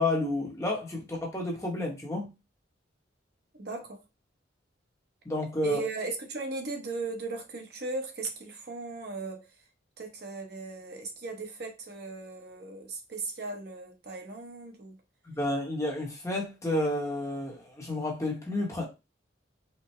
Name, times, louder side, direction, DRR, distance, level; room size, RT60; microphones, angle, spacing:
voice 1, 0.0-2.3 5.2-5.8 15.3-18.9, left 1 dB, 15° left, 0.8 m, -30 dB
voice 2, 3.6-4.0 5.6-9.5 10.0-15.0, right 3 dB, 55° right, 0.8 m, -37 dB
4.2 x 2.0 x 3.1 m
head